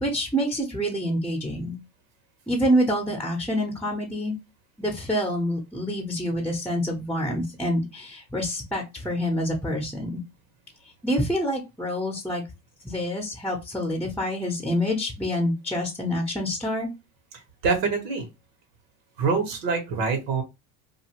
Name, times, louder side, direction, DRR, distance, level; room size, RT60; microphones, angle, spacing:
voice 1, 0.0-1.8 2.5-4.3 4.8-10.2 11.0-12.4 12.8-16.9, equal, 5° left, 1 dB, 0.7 m, -27 dB
voice 2, 17.3-18.3 19.2-20.4, right 4 dB, 85° right, 5 dB, 1.2 m, -25 dB
2.6 x 2.5 x 2.9 m, 0.23 s
supercardioid pair, 100°, 40 cm